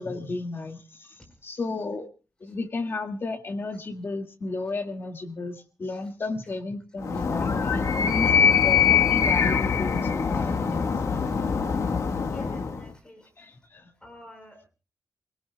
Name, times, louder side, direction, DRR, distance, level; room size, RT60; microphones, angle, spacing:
voice 1, 0.0-2.1 2.4-10.9 13.4-13.9, left 3 dB, 40° left, 4 dB, 2.0 m, -33 dB
Animal, 7.0-12.9, left 6 dB, 65° left, 1.4 m, -23 dB
voice 2, 12.3-13.3 14.0-14.7, left 1 dB, 15° left, 4 dB, 5.0 m, -47 dB
28.5 x 18.0 x 2.2 m, 0.35 s
wide cardioid pair, 165°, 6 cm